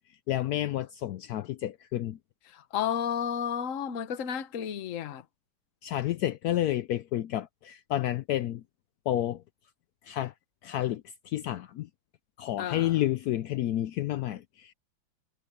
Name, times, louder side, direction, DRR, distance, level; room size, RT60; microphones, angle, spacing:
voice 1, 0.3-2.2 5.8-8.6 9.1-9.4 10.0-10.3 10.6-11.9 12.4-14.7, left 13 dB, 80° left, 0.8 m, -30 dB
voice 2, 2.5-5.2 12.6-13.1, left 8 dB, 50° left, 1.2 m, -32 dB
omnidirectional pair, 2.2 m